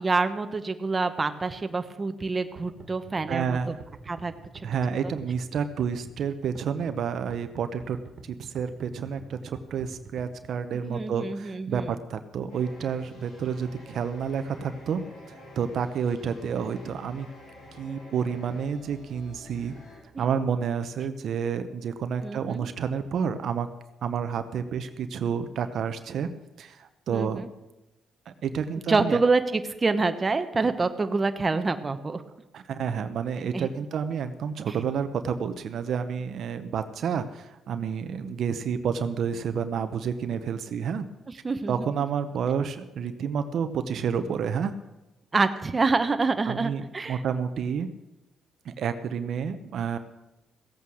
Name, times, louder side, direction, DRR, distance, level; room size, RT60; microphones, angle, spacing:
voice 1, 0.0-3.6 4.1-4.3 10.9-12.0 22.2-22.6 27.1-27.5 28.9-32.2 33.5-33.7 41.3-41.7 45.3-47.2, right 3 dB, 30° right, 8 dB, 1.0 m, -26 dB
sound 1, 2.6-10.5, right 4 dB, 50° right, 1.8 m, -47 dB
voice 2, 3.3-3.8 4.6-8.0 8.2-15.0 15.6-17.3 17.8-19.7 20.2-23.7 24.0-26.3 26.6-27.5 28.3-29.2 32.5-41.1 41.7-44.8 46.5-47.9 48.6-50.0, right 7 dB, 65° right, 9 dB, 0.8 m, -30 dB
sound 2, 12.5-20.0, left 2 dB, 75° left, 4.6 m, -48 dB
16.0 x 8.4 x 6.3 m, 1.0 s
cardioid pair, 90°, 0 cm